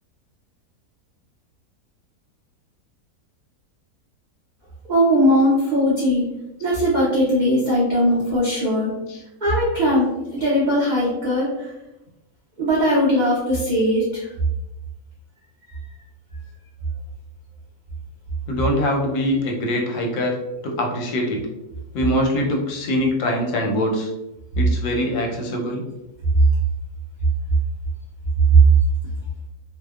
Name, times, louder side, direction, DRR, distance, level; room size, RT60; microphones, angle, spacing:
voice 1, 4.9-6.3 6.6-8.9 9.4-11.7 12.6-14.3, equal, 70° right, -8 dB, 0.4 m, -19 dB
voice 2, 18.5-20.4 20.6-21.4 21.9-24.1 24.6-25.8, left 1 dB, 90° left, 1 dB, 1.1 m, -23 dB
2.7 x 2.0 x 2.3 m, 0.94 s
omnidirectional pair, 1.6 m